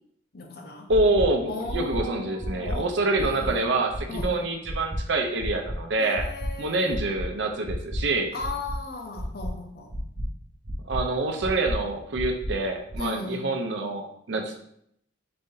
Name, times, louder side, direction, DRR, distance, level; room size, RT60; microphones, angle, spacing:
voice 1, 0.3-0.9 1.5-2.9 3.2-3.7 4.1-4.5 6.0-7.0 8.3-9.9 13.0-13.6, left 3 dB, 50° left, 3 dB, 0.6 m, -37 dB
sound 1, 0.9-1.2 1.6-2.0 2.4-2.7 3.1-3.5 3.9-4.2 4.6-5.0 5.4-5.8 6.1-6.5 6.9-7.2 7.6-8.0 8.4-8.7 9.1-9.5 9.9-10.2 10.6-11.0 11.4-11.7 12.1-12.5 12.9-13.0, equal, 40° right, 0.9 m, -32 dB
voice 2, 0.9-6.3 6.6-8.3 10.9-14.6, right 2 dB, 65° right, 4 dB, 0.5 m, -26 dB
4.1 x 2.7 x 3.7 m, 0.71 s
head